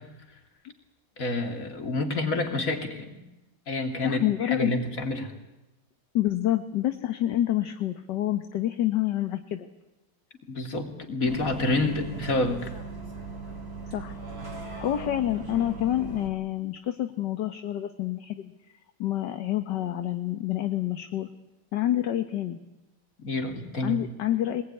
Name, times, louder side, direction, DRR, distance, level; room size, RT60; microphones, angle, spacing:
voice 1, 1.2-3.1 3.7-5.3 10.5-12.7 23.2-24.0, left 2 dB, 35° left, 3 dB, 3.4 m, -28 dB
voice 2, 4.0-4.7 6.1-9.7 13.9-14.2 14.5-18.5 19.0-21.3 21.7-22.6 23.8-24.6, left 13 dB, 55° left, 8 dB, 1.6 m, -28 dB
Bus, 11.3-16.3, right 3 dB, 25° right, 4.0 m, -39 dB
25.0 x 20.0 x 9.8 m, 0.99 s
omnidirectional pair, 2.4 m